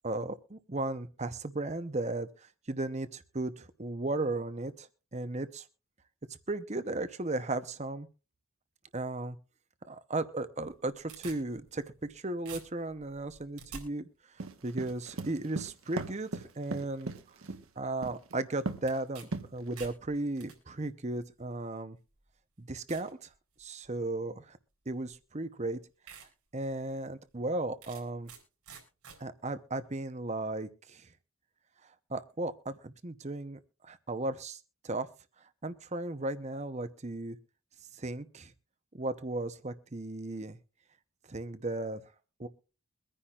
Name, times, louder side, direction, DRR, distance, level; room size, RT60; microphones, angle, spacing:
voice 1, 0.0-2.3 2.7-5.6 6.5-8.1 8.9-9.4 9.9-14.1 14.6-17.1 17.8-22.0 22.6-23.3 23.6-24.6 24.9-25.8 26.5-28.3 29.2-31.1 32.1-34.6 34.8-35.1 35.6-37.4 37.9-38.5 38.9-40.6 41.3-42.0 42.4-42.5, right 2 dB, 30° right, 12 dB, 0.8 m, -35 dB
sound 1, 10.6-12.2 12.5-13.8 18.9-19.3 19.6-20.6 21.4-21.5 22.2-22.3 22.9-23.1 23.6-24.0 25.1-25.2 25.6-25.7 26.1-26.3 26.7-26.8 27.8-28.4 28.7-29.2, right 6 dB, 85° right, 4.8 m, -48 dB
sound 2, 14.4-17.6 18.0-18.3 18.7-19.0 19.3-19.9, right 2 dB, 65° right, 1.3 m, -37 dB
23.0 x 10.0 x 2.4 m, 0.33 s
head